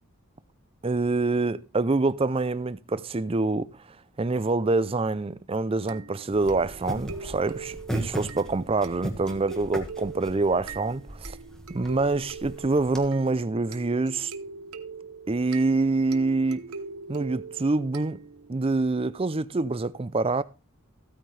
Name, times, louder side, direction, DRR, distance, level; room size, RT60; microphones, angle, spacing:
voice 1, 0.8-3.7 4.2-11.4 11.7-14.3 15.3-16.6 17.1-18.2 18.5-20.4, right 3 dB, 25° right, 0.5 m, -26 dB
sound 1, 5.9-18.6, right 4 dB, 85° right, 1.0 m, -42 dB
sound 2, 6.3-13.0, right 1 dB, 5° left, 1.7 m, -37 dB
15.0 x 9.2 x 3.3 m
head